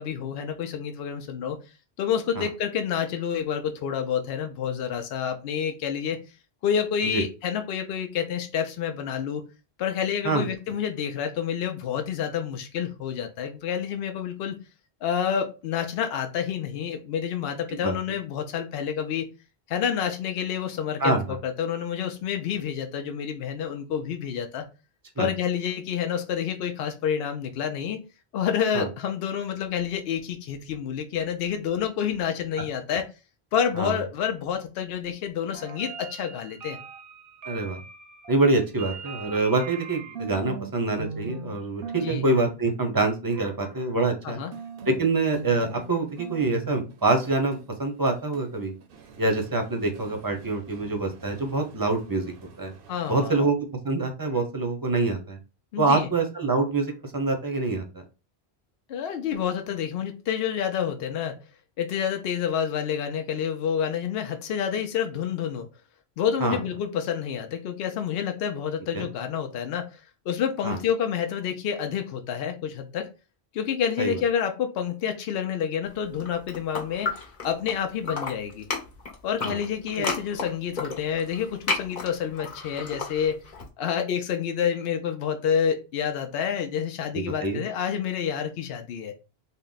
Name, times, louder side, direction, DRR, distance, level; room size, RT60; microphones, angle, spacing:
voice 1, 0.0-1.6 2.0-6.2 6.6-9.4 9.8-14.6 15.0-19.3 19.7-24.6 25.2-28.0 28.3-33.1 33.5-36.8 42.0-42.2 44.2-44.5 52.9-53.4 55.7-56.1 58.9-61.3 61.8-65.7 66.2-70.0 70.3-73.1 73.5-78.7 79.2-83.4 83.8-89.1, left 8 dB, 70° left, 6 dB, 0.8 m, -28 dB
sound 1, 35.5-40.7 41.0-41.6 41.8-42.5 44.5-53.4, right 7 dB, 60° right, 0.7 m, -40 dB
voice 2, 37.4-37.8 38.3-44.4 44.8-48.7 49.2-52.3 52.6-52.7 53.1-55.4 55.8-57.8 66.4-66.6 68.9-69.1 70.6-70.8 74.0-74.2 79.4-79.6 80.0-80.1 87.1-87.6, right 3 dB, 25° right, 4 dB, 0.6 m, -25 dB
sound 2, 76.1-77.7 78.0-83.6, left 4 dB, 45° left, 0.9 m, -32 dB
3.7 x 2.2 x 3.8 m, 0.30 s
omnidirectional pair, 1.1 m